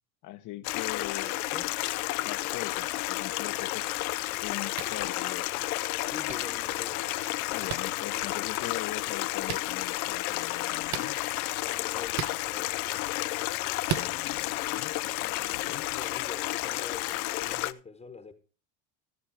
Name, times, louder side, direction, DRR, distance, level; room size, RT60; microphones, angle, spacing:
voice 1, 0.2-1.3 2.2-3.9 4.4-5.6 7.5-11.2 14.0-15.8, left 14 dB, 45° left, 0.9 m, -41 dB
Stream, 0.6-17.7, left 18 dB, 85° left, 0.7 m, -31 dB
voice 2, 1.2-1.8 4.8-5.1 6.0-7.1 11.7-13.0 15.2-18.3, left 4 dB, 15° left, 1.2 m, -45 dB
sound 1, 4.7-5.0 6.3-6.4 7.7-7.8 9.4-9.6 10.9-11.1 12.1-12.4 13.8-14.1, right 10 dB, 65° right, 1.1 m, -33 dB
14.5 x 7.1 x 4.8 m
supercardioid pair, 110°, 42 cm